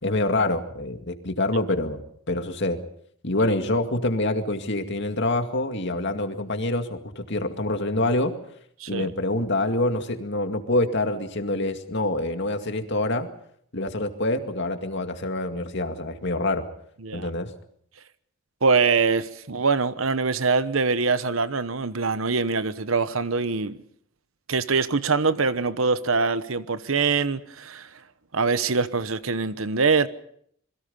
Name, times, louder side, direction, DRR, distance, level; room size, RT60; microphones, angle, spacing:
voice 1, 0.0-2.0 2.3-2.8 3.2-8.3 8.9-13.3 13.7-16.6 17.1-17.5, left 2 dB, 60° left, 2.2 m, -26 dB
voice 2, 18.6-23.8 24.5-27.9 28.3-30.1, right 4 dB, 75° right, 1.1 m, -23 dB
27.5 x 22.0 x 5.5 m
head